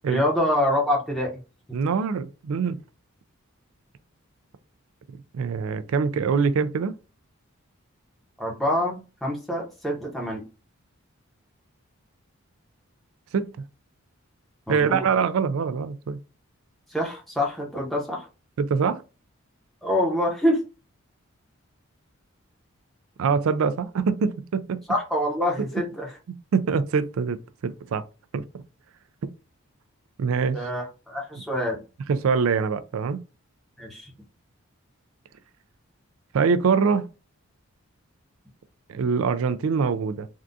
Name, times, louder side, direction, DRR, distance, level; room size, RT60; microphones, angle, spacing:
voice 1, 0.1-1.4 8.4-10.4 14.7-15.1 16.9-18.3 19.8-20.6 24.9-26.1 30.5-31.8 33.8-34.1, left 1 dB, ahead, 0.9 m, -26 dB
voice 2, 1.7-2.8 5.3-7.0 13.3-13.5 14.7-16.2 18.6-19.0 23.2-24.8 25.6-25.7 26.5-28.0 28.3-28.4 30.2-30.6 32.1-33.2 36.3-37.1 38.9-40.3, right 5 dB, 70° right, 0.3 m, -24 dB
3.5 x 2.4 x 2.6 m
head